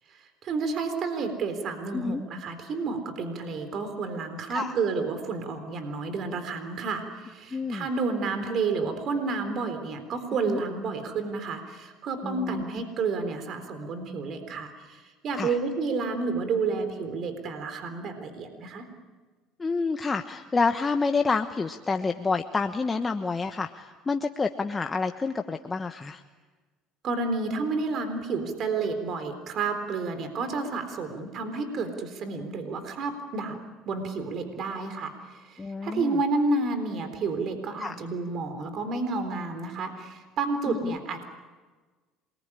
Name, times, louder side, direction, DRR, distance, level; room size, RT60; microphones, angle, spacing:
voice 1, 0.1-18.9 27.0-33.6 33.9-41.2, right 4 dB, 55° right, 8 dB, 3.8 m, -30 dB
voice 2, 7.5-7.9 10.5-10.6 12.2-12.6 15.3-15.5 19.6-26.2 35.6-36.2 37.8-38.0 40.7-41.0, left 4 dB, 25° left, 6 dB, 1.1 m, -28 dB
27.5 x 21.5 x 9.9 m, 1.3 s
supercardioid pair, 85°, 0 cm